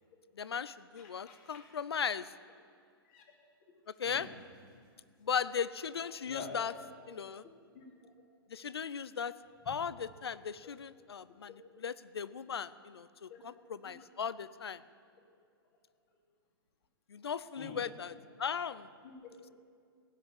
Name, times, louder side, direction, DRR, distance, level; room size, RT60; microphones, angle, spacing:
voice 1, 0.4-2.3 4.0-4.3 5.2-6.7 7.1-7.4 8.5-9.3 9.7-14.8 17.1-18.1 18.4-18.9, left 7 dB, 75° left, 17 dB, 0.5 m, -37 dB
voice 2, 1.0-1.6 3.1-3.2 4.0-4.3 6.3-7.1 7.7-8.1 13.3-13.4 14.0-14.1 17.6-17.8 19.0-19.3, left 4 dB, 45° left, 0 dB, 3.0 m, -47 dB
16.0 x 6.6 x 8.7 m, 2.2 s
figure-of-eight pair, 115°, 13 cm